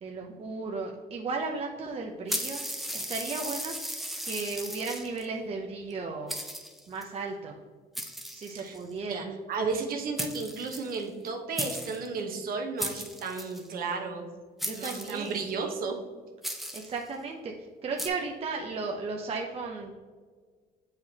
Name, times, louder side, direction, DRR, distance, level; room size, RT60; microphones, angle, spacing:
voice 1, 0.0-2.6 2.9-3.7 4.2-6.4 6.9-7.6 8.3-9.3 14.7-15.4 16.7-17.5 17.8-19.9, right 4 dB, 35° right, 1 dB, 0.6 m, -35 dB
sound 1, 2.3-5.2 5.9-6.0 6.3-7.0 7.9-8.9 9.9-10.0 10.2-11.3 11.6-12.1 12.8-13.7 14.6-15.5 16.4-17.0 18.0-18.1, equal, ahead, 0.7 m, -36 dB
voice 2, 9.1-14.3 14.7-16.0, right 4 dB, 60° right, 3 dB, 1.1 m, -33 dB
7.6 x 4.9 x 2.8 m, 1.5 s
cardioid pair, 110°, 17 cm